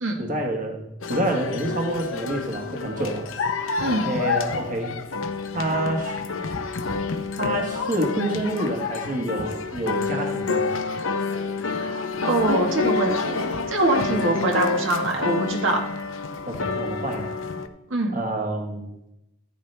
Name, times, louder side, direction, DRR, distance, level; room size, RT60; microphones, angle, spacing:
voice 1, 0.2-0.8 1.1-3.3 4.0-4.9 5.5-6.2 7.4-10.8 16.5-17.2 18.1-18.9, right 1 dB, 40° right, 2 dB, 1.4 m, -27 dB
Tuning Up, 1.0-17.7, left 4 dB, 80° left, 0.8 m, -28 dB
voice 2, 3.8-4.1 11.7-15.8 17.9-18.1, right 2 dB, 75° right, 1 dB, 1.5 m, -24 dB
14.5 x 8.6 x 3.3 m, 0.89 s
head